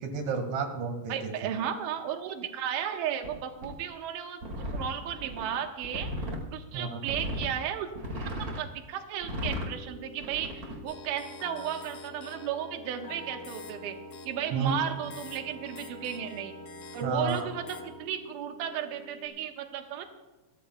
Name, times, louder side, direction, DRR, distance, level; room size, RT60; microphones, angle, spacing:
voice 1, 0.0-1.3 6.7-7.0 14.5-14.8 17.0-17.5, right 5 dB, 80° right, 4 dB, 4.3 m, -31 dB
voice 2, 1.1-7.9 8.6-14.0 14.2-16.6 16.9-20.0, right 9 dB, 65° right, 4 dB, 2.2 m, -34 dB
sound 1, 3.2-3.3 3.6-3.7 4.4-6.4 7.1-7.5 7.9-8.6 9.2-9.7 10.2-10.8, equal, 45° right, 1.2 m, -35 dB
sound 2, 9.3-19.3, right 2 dB, 15° right, 3.9 m, -49 dB
sound 3, 10.9-17.9, left 3 dB, 70° left, 2.2 m, -46 dB
29.5 x 13.5 x 2.3 m, 1.1 s
omnidirectional pair, 5.2 m